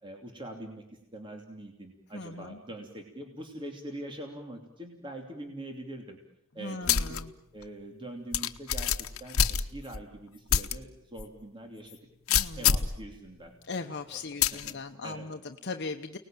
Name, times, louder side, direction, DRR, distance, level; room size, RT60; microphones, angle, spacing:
voice 1, 0.0-0.8 1.1-6.2 6.5-7.2 7.5-12.0 12.6-13.5 14.1-14.7 15.0-15.3, right 1 dB, 25° right, 2 dB, 2.9 m, -43 dB
voice 2, 2.1-2.6 6.6-7.3 12.3-12.6 13.7-16.2, left 3 dB, 55° left, 5 dB, 1.0 m, -38 dB
sound 1, 6.9-7.2 7.6-7.7 8.3-10.0 10.5-10.7 11.2-11.3 12.3-13.0 14.4-14.7, left 8 dB, 80° left, 1.1 m, -25 dB
30.0 x 19.5 x 9.1 m, 0.84 s
head